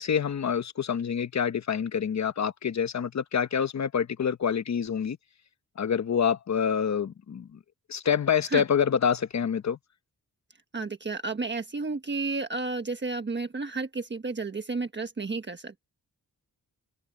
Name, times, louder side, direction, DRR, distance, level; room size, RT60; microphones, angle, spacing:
voice 1, 0.0-5.2 5.8-7.6 7.9-9.8, left 7 dB, 50° left, 1.0 m, -27 dB
voice 2, 10.7-15.8, right 3 dB, 30° right, 1.4 m, -32 dB
wide cardioid pair, 125°, 35 cm